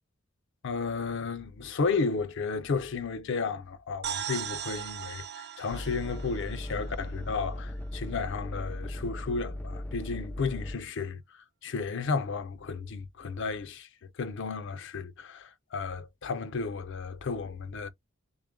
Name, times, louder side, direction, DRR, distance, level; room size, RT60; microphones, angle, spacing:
voice 1, 0.6-11.2 11.6-13.9 14.2-17.9, left 4 dB, 65° left, 0.5 m, -33 dB
sound 1, 4.0-7.7, right 9 dB, 55° right, 0.7 m, -39 dB
sound 2, 5.7-10.8, left 1 dB, 10° left, 0.3 m, -38 dB
3.6 x 2.1 x 3.5 m
head